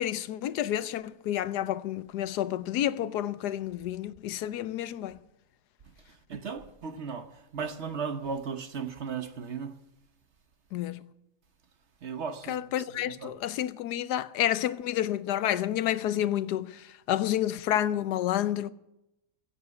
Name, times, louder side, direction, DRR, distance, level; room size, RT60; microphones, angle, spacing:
voice 1, 0.0-5.2 10.7-11.0 12.5-18.7, left 12 dB, 90° left, 1.3 m, -30 dB
voice 2, 6.3-9.7 12.0-12.6 13.0-13.4, right 5 dB, 50° right, 1.2 m, -36 dB
15.5 x 8.2 x 9.5 m
omnidirectional pair, 1.7 m